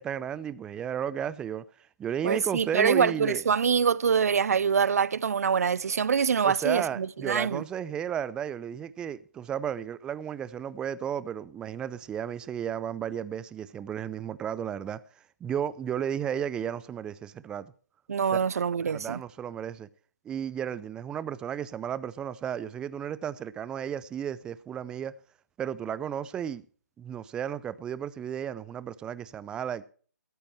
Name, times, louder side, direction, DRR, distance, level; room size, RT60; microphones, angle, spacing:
voice 1, 0.0-1.6 2.0-3.4 6.4-15.0 15.4-17.7 18.3-18.4 18.8-19.9 20.2-25.1 25.6-26.6 27.0-29.8, right 9 dB, 10° right, 0.5 m, -33 dB
voice 2, 2.2-7.6 18.1-19.2, right 6 dB, 55° right, 0.5 m, -25 dB
16.5 x 14.0 x 3.2 m
figure-of-eight pair, 145°, 10 cm